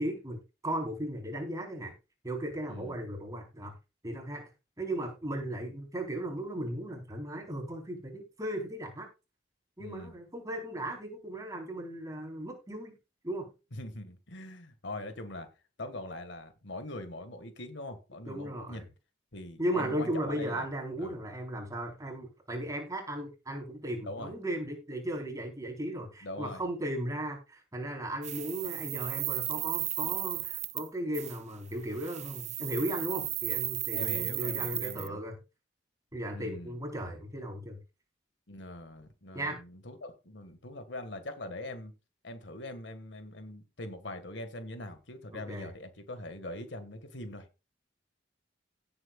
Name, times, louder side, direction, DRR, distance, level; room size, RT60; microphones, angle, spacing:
voice 1, 0.0-1.9 2.2-3.8 4.0-4.4 4.8-9.1 9.8-12.9 13.2-13.5 18.3-18.8 19.6-35.3 36.1-37.8 39.3-39.6 45.3-45.7, right 1 dB, 20° right, 4.2 m, -36 dB
voice 2, 9.8-10.1 13.7-15.5 15.8-18.9 19.3-20.7 21.0-21.2 24.0-24.3 26.2-26.6 33.9-35.2 36.3-36.8 38.5-41.9 42.2-47.5, left 1 dB, 75° left, 1.9 m, -42 dB
sound 1, 28.2-30.9 31.1-31.4 31.9-35.1, right 15 dB, 40° right, 0.5 m, -34 dB
17.0 x 7.9 x 2.4 m
head